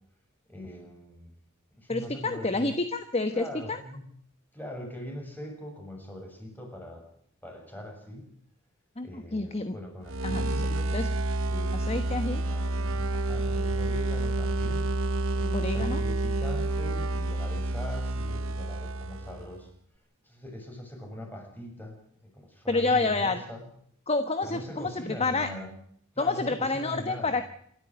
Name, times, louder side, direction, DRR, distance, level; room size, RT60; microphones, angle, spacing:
voice 1, 0.5-1.3 1.7-2.7 3.3-4.0 4.5-7.0 7.4-8.2 9.0-10.9 11.5-14.9 15.3-19.7 20.2-22.0 22.2-23.6 24.4-25.7 26.1-27.4, left 1 dB, 10° left, 2 dB, 7.3 m, -41 dB
voice 2, 1.9-3.8 9.0-9.7 10.2-10.6 10.9-11.1 11.7-12.4 15.5-16.0 22.7-23.4 24.1-25.5 26.2-27.5, left 3 dB, 30° left, 9 dB, 1.3 m, -29 dB
sound 1, 10.0-19.6, right 2 dB, 65° right, 1.0 m, -29 dB
28.0 x 13.0 x 7.7 m, 0.66 s
head